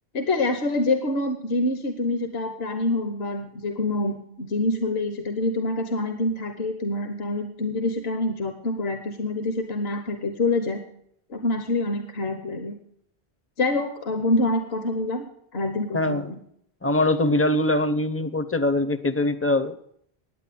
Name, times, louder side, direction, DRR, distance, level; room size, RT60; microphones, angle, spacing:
voice 1, 0.1-10.8 11.3-12.8 13.6-16.4, left 2 dB, 70° left, 7 dB, 1.2 m, -26 dB
voice 2, 15.9-16.3 16.8-19.8, left 1 dB, 20° left, 12 dB, 0.4 m, -23 dB
10.0 x 8.8 x 8.4 m, 0.70 s
omnidirectional pair, 1.1 m